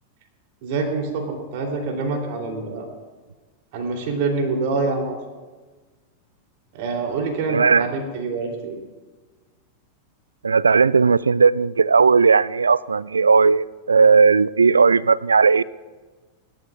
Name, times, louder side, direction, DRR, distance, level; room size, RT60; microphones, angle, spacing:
voice 1, 0.6-2.9 3.7-5.2 6.7-8.8, right 3 dB, 50° right, 2 dB, 3.4 m, -26 dB
voice 2, 7.5-7.9 10.4-15.6, right 5 dB, 75° right, 23 dB, 0.3 m, -16 dB
27.5 x 12.5 x 2.5 m, 1.3 s
figure-of-eight pair, 90°, 0 cm